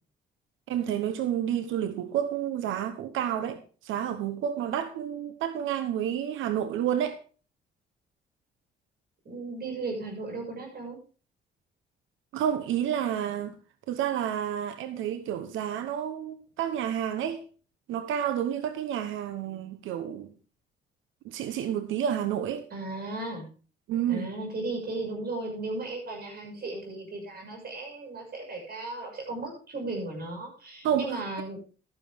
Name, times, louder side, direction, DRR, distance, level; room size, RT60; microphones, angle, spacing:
voice 1, 0.7-7.2 12.3-13.5 13.9-17.4 17.9-20.3 21.2-22.6 23.9-24.3 30.8-31.1, right 9 dB, 85° right, 1.0 m, -30 dB
voice 2, 9.2-11.0 22.7-23.5 24.1-31.6, right 2 dB, 50° right, 6.3 m, -36 dB
13.0 x 9.8 x 3.6 m
cardioid pair, 90°, 20 cm